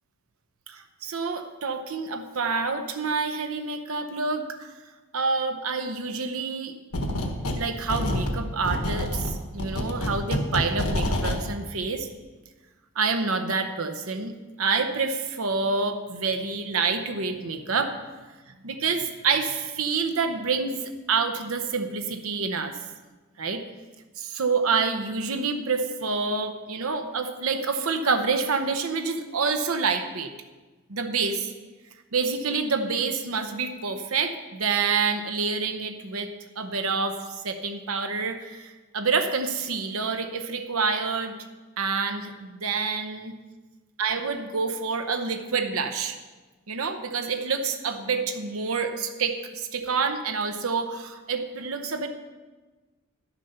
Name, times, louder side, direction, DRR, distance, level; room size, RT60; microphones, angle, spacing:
voice 1, 0.7-4.7 5.1-6.7 7.1-7.2 7.5-12.1 13.0-17.9 18.6-22.7 23.4-23.6 24.2-30.3 30.9-31.5 32.1-36.3 36.6-37.2 37.4-41.4 41.8-43.4 44.0-46.2 46.7-52.1, right 4 dB, 70° right, 6 dB, 0.9 m, -27 dB
sound 1, 6.9-7.6 7.9-11.4, left 1 dB, 80° left, 1.3 m, -27 dB
12.0 x 7.1 x 5.6 m, 1.3 s
head